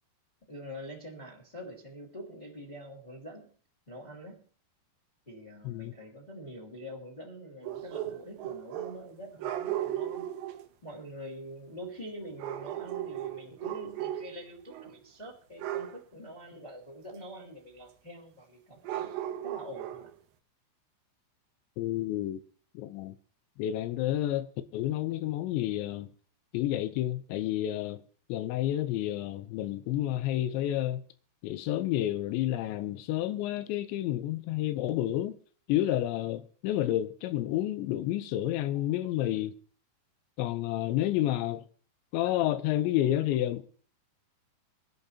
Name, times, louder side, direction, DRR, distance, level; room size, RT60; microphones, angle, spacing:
voice 1, 0.5-3.5 3.9-4.4 5.3-10.2 10.8-19.1 19.4-20.1, equal, 15° left, 2.0 m, -45 dB
sound 1, 7.6-9.1 9.4-10.6 12.4-14.4 14.7-15.0 15.6-16.0 18.9-20.2, right 12 dB, 90° right, 3.1 m, -36 dB
voice 2, 21.8-22.4 22.7-23.2 23.6-24.5 24.7-26.1 26.5-28.0 28.3-31.0 31.4-35.4 35.7-39.5 40.4-41.6 42.1-43.6, left 13 dB, 90° left, 3.1 m, -30 dB
23.0 x 11.0 x 2.8 m
omnidirectional pair, 5.1 m